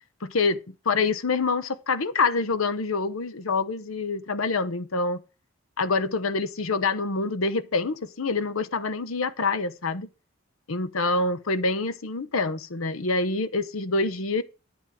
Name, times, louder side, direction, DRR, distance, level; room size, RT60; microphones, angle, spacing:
voice 1, 0.2-5.2 5.8-10.1 10.7-14.4, left 3 dB, 80° left, 0.9 m, -26 dB
10.5 x 8.0 x 4.8 m
head